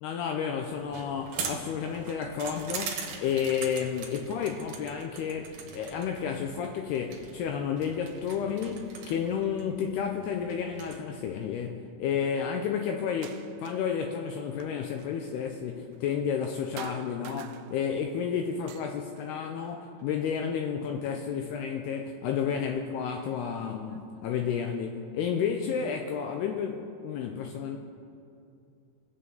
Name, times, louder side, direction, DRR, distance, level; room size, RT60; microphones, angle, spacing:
voice 1, 0.0-27.8, left 7 dB, 90° left, 3 dB, 2.3 m, -31 dB
sound 1, 0.8-11.0, right 5 dB, 65° right, 2.3 m, -42 dB
sound 2, 13.1-14.0 14.3-16.5 16.8-18.1 18.5-20.4 21.0-21.9 22.9-23.0 23.6-24.6, right 10 dB, 85° right, 2.7 m, -49 dB
22.5 x 7.8 x 3.9 m, 2.6 s
omnidirectional pair, 5.3 m